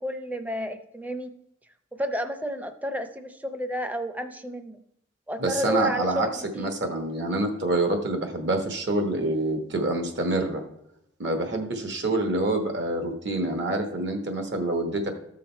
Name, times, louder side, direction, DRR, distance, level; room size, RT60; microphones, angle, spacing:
voice 1, 0.0-1.3 1.9-4.8 5.3-6.7, left 1 dB, 10° right, 9 dB, 0.6 m, -31 dB
voice 2, 5.4-6.3 6.6-10.6 11.2-15.1, right 2 dB, 60° right, 5 dB, 1.1 m, -26 dB
13.5 x 6.5 x 4.4 m, 0.81 s
head